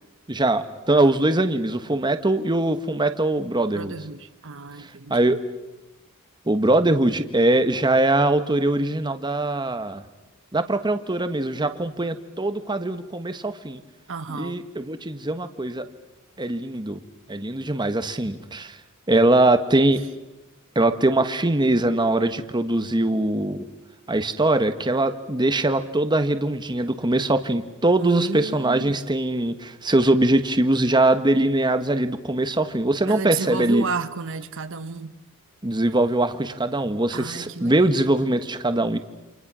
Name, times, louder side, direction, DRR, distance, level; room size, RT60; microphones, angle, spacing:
voice 1, 0.3-3.9 5.1-5.4 6.5-10.0 10.5-13.8 14.3-15.8 16.4-17.0 17.3-18.8 19.1-20.0 20.7-23.7 24.1-33.9 35.6-39.0, right 2 dB, 20° right, 9 dB, 1.3 m, -22 dB
voice 2, 3.7-5.4 14.1-14.6 28.0-29.0 33.1-35.1 37.1-37.9, right 5 dB, 60° right, 10 dB, 1.0 m, -32 dB
29.0 x 27.0 x 6.2 m, 1.0 s
head